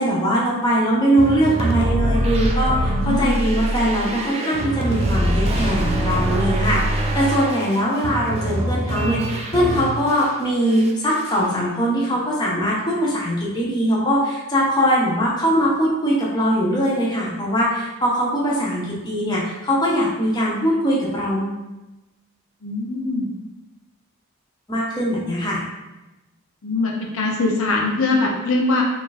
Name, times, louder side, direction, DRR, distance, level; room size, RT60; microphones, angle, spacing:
voice 1, 0.0-21.6 24.7-25.6, equal, 20° left, -5 dB, 0.6 m, -21 dB
sound 1, 1.2-10.3 10.7-11.5, right 1 dB, 30° right, 0.3 m, -23 dB
voice 2, 2.9-3.3 22.6-23.3 26.6-28.8, left 2 dB, 65° left, 0 dB, 0.6 m, -22 dB
3.1 x 2.4 x 3.9 m, 1.0 s
head